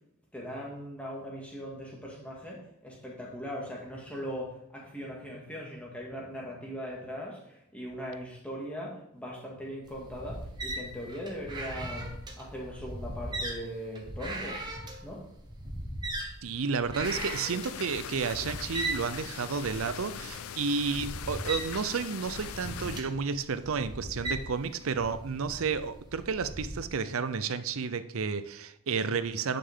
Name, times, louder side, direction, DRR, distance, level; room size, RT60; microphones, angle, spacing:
voice 1, 0.3-14.6 15.0-15.3, equal, 5° left, 2.1 m, -40 dB
sound 1, 9.9-26.9, right 1 dB, 20° right, 1.1 m, -39 dB
voice 2, 16.4-29.6, right 5 dB, 70° right, 0.6 m, -31 dB
sound 2, 17.0-23.0, left 9 dB, 80° left, 0.4 m, -41 dB
10.0 x 5.7 x 3.7 m
head